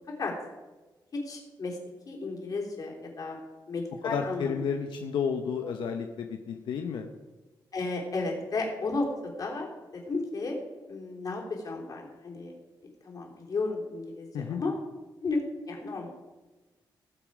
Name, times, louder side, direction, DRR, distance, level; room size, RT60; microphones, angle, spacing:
voice 1, 1.1-1.8 2.1-3.4 3.7-4.6 5.6-5.8 7.7-10.6 10.9-12.5 13.0-14.7 15.2-16.1, left 3 dB, 50° left, 0 dB, 3.5 m, -33 dB
voice 2, 4.0-7.1 14.3-14.6, left 6 dB, 90° left, 5 dB, 0.9 m, -31 dB
18.5 x 7.3 x 4.9 m, 1.2 s
cardioid pair, 120°, 8 cm